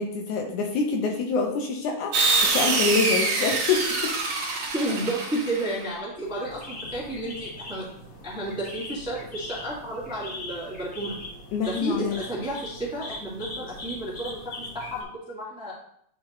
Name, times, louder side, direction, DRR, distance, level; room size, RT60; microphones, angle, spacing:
voice 1, 0.0-4.1 11.5-12.2, left 4 dB, 75° left, 2 dB, 2.0 m, -26 dB
sound 1, 2.1-5.8, right 3 dB, 65° right, 1.5 m, -25 dB
voice 2, 4.7-7.9 8.2-11.2 11.6-15.7, right 1 dB, 5° right, -7 dB, 0.8 m, -32 dB
sound 2, 6.2-15.0, left 1 dB, 50° left, 1.1 m, -40 dB
10.5 x 3.6 x 3.0 m, 0.71 s
omnidirectional pair, 3.9 m